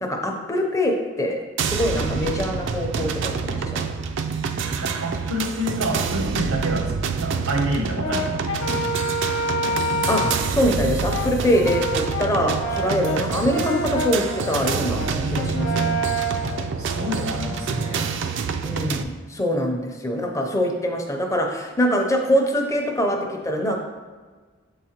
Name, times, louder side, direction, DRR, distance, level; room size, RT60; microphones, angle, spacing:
voice 1, 0.0-3.9 10.1-10.2 10.5-15.0 15.3-15.9 18.7-23.8, equal, 15° left, 2 dB, 0.6 m, -24 dB
sound 1, 1.6-19.0, right 5 dB, 60° right, 0.3 m, -27 dB
voice 2, 4.8-8.7 13.1-13.3 15.1-16.1 16.4-18.1, right 1 dB, 90° right, 3 dB, 0.9 m, -28 dB
Brass instrument, 8.0-10.5 11.1-18.1, equal, 70° left, 0.6 m, -28 dB
6.9 x 4.7 x 2.9 m, 1.4 s
head